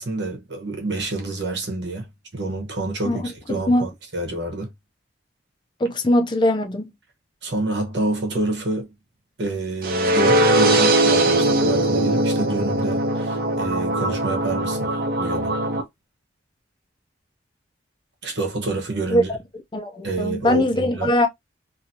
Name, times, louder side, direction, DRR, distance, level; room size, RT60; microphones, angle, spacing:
voice 1, 0.0-4.7 7.4-8.9 9.4-14.9 15.2-15.6 18.2-19.3 20.0-21.1, right 2 dB, 65° right, 1.1 m, -28 dB
voice 2, 5.8-6.9 19.1-19.2 19.7-21.3, left 1 dB, 25° left, 0.5 m, -20 dB
sound 1, 9.8-15.8, right 1 dB, 50° right, 0.7 m, -20 dB
2.8 x 2.7 x 2.7 m
head